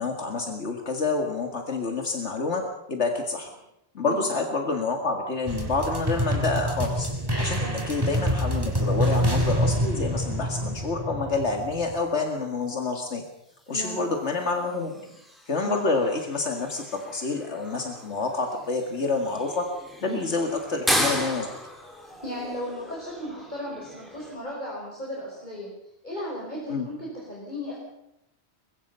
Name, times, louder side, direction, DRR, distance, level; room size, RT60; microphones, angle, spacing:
voice 1, 0.0-2.6 2.9-3.5 3.9-7.1 7.4-13.2 13.7-14.9 15.5-19.7 20.0-21.5 26.7-26.9, left 3 dB, 90° left, 3 dB, 2.3 m, -28 dB
sound 1, 5.5-12.0, equal, 20° right, 3.5 m, -26 dB
sound 2, 12.4-24.4, equal, ahead, 4.3 m, -35 dB
voice 2, 13.7-14.0 14.9-15.0 15.6-15.8 20.0-20.2 22.0-25.7 26.0-27.8, equal, 40° left, -3 dB, 5.6 m, -35 dB
23.0 x 22.5 x 5.6 m, 0.83 s
omnidirectional pair, 1.1 m